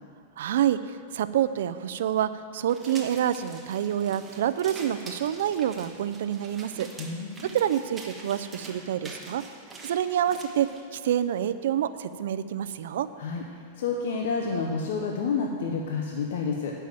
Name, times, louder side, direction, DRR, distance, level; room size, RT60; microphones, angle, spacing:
voice 1, 0.4-6.9 7.5-9.4 9.8-13.1, right 10 dB, 80° right, 13 dB, 0.4 m, -27 dB
sound 1, 2.7-10.8, right 2 dB, 10° right, 1.1 m, -45 dB
voice 2, 7.0-7.5 13.2-16.7, left 5 dB, 75° left, 1 dB, 0.8 m, -29 dB
8.8 x 5.5 x 7.5 m, 2.3 s
supercardioid pair, 150°, 0 cm